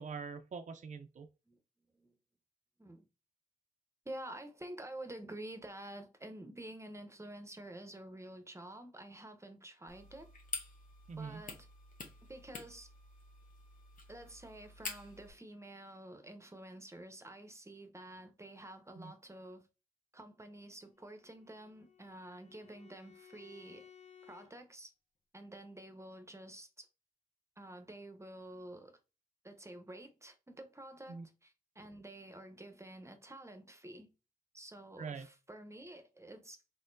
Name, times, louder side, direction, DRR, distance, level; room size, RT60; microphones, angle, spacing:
voice 1, 0.0-1.3 11.1-11.4 19.0-19.1 31.1-31.2 35.0-35.3, right 5 dB, 55° right, 0.5 m, -43 dB
voice 2, 4.0-10.3 11.2-11.7 12.2-12.9 14.1-19.7 20.1-23.9 24.2-24.9 25.3-26.9 27.6-29.0 29.4-34.1 34.5-36.6, right 1 dB, 20° right, 0.8 m, -49 dB
sound 1, 9.9-15.3, left 3 dB, 70° left, 1.2 m, -48 dB
Bowed string instrument, 21.0-24.5, left 7 dB, 50° left, 0.9 m, -59 dB
4.2 x 3.7 x 2.6 m
cardioid pair, 65°, 15 cm